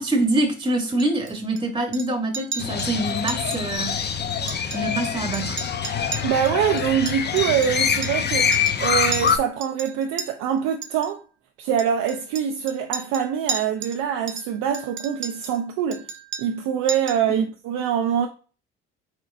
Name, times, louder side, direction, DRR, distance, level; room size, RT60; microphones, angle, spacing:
voice 1, 0.0-4.0 4.7-5.6 17.3-17.4, right 2 dB, 15° right, 1.2 m, -25 dB
Chink clink, 1.0-1.6 1.9-2.1 2.3-2.9 3.3-3.6 3.9-4.0 4.3-5.1 5.3-8.3 8.5-8.8 9.1-10.3 10.8-11.1 11.8-14.0 14.3-15.6 15.9-16.6 16.9-17.3, right 5 dB, 40° right, 0.8 m, -34 dB
Crow, 2.6-9.4, left 7 dB, 35° left, 0.8 m, -25 dB
voice 2, 6.2-11.2 11.6-16.0 16.4-18.3, right 8 dB, 70° right, 0.7 m, -24 dB
4.6 x 4.3 x 2.5 m
hypercardioid pair, 55°, 29 cm